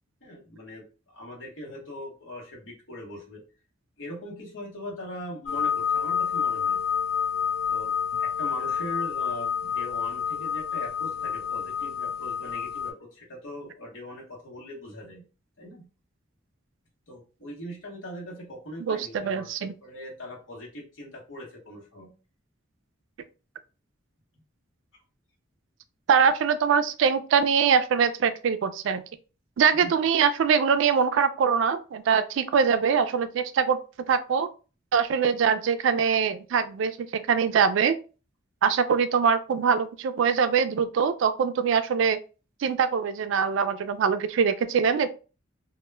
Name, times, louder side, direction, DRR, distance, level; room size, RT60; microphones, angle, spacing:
voice 1, 0.2-3.4 4.0-6.8 7.7-7.9 8.2-15.2 15.6-15.9 17.1-19.5 19.8-22.1 29.7-29.9, equal, 75° left, 0.9 m, -41 dB
sound 1, 5.5-12.9, left 7 dB, 50° left, 0.4 m, -28 dB
voice 2, 18.8-19.7 26.1-29.0 29.6-33.8 34.1-34.5 34.9-38.0 38.6-42.2 42.6-45.1, right 6 dB, 70° right, 0.3 m, -23 dB
2.1 x 2.1 x 3.2 m
head